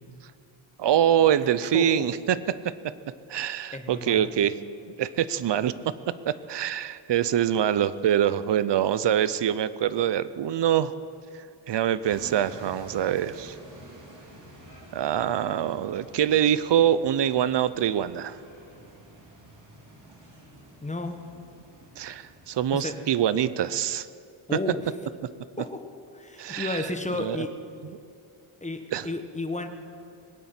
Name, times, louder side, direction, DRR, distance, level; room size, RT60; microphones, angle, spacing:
voice 1, 0.8-2.9 3.3-4.6 5.0-5.9 6.2-10.9 11.7-13.5 14.9-18.4 22.0-24.1 26.4-26.8 27.2-27.4 28.9-29.1, right 10 dB, 55° right, 16 dB, 0.7 m, -24 dB
voice 2, 1.7-2.1 3.7-4.3 20.8-21.2 22.7-23.0 24.5-24.9 25.6-25.9 26.1-27.6 28.6-29.7, left 2 dB, 15° left, 7 dB, 1.1 m, -32 dB
sound 1, 12.0-22.9, right 1 dB, 35° right, 3.3 m, -49 dB
20.5 x 8.5 x 7.6 m, 2.4 s
cardioid pair, 110°, 50 cm